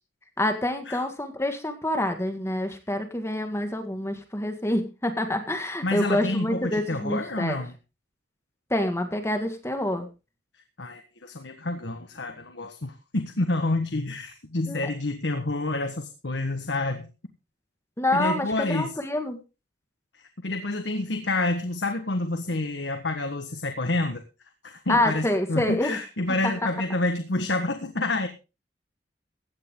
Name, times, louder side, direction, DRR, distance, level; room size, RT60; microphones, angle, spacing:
voice 1, 0.4-7.6 8.7-10.1 14.7-14.8 18.0-19.4 24.9-26.0 26.4-26.5, left 1 dB, 15° left, 6 dB, 1.9 m, -27 dB
voice 2, 5.8-7.7 10.8-17.1 18.1-18.9 20.4-24.2 24.6-28.3, left 2 dB, 80° left, 6 dB, 1.4 m, -28 dB
16.0 x 10.5 x 3.8 m, 0.30 s
head